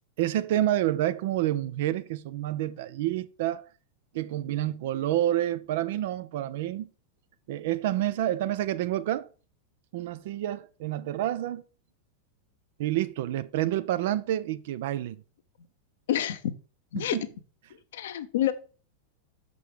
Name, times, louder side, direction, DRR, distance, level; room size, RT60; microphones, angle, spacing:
voice 1, 0.2-3.7 4.1-6.9 7.5-9.3 9.9-11.6 12.8-15.2 16.9-17.2, right 13 dB, 55° right, 0.6 m, -28 dB
voice 2, 16.1-16.4 16.9-17.2 17.9-18.5, left 11 dB, 60° left, 0.8 m, -27 dB
6.6 x 5.3 x 6.0 m
figure-of-eight pair, 90°, 0 cm